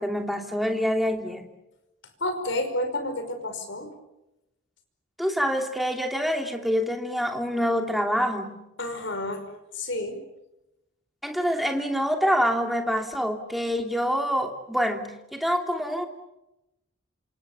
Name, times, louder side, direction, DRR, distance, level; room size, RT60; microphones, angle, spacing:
voice 1, 0.0-1.5 5.2-8.6 11.2-16.1, equal, ahead, 4 dB, 2.8 m, -26 dB
voice 2, 2.2-3.9 8.8-9.5 9.7-10.2, left 1 dB, 65° left, 8 dB, 5.4 m, -30 dB
28.0 x 27.0 x 7.0 m, 0.93 s
head